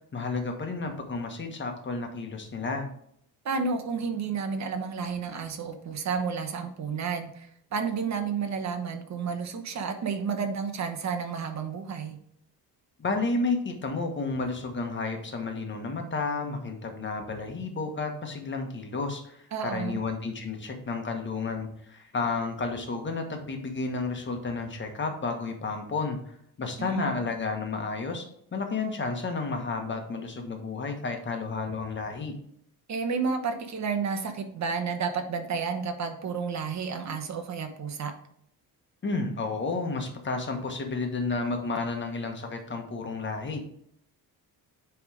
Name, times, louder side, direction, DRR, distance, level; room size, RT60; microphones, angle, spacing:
voice 1, 0.1-2.9 13.0-26.2 26.6-32.3 39.0-43.6, left 3 dB, 30° left, 4 dB, 1.3 m, -31 dB
voice 2, 3.4-12.2 19.5-20.0 26.8-27.1 32.9-38.1, right 5 dB, 50° right, 7 dB, 1.1 m, -31 dB
9.1 x 3.5 x 4.8 m, 0.71 s
cardioid pair, 135°, 36 cm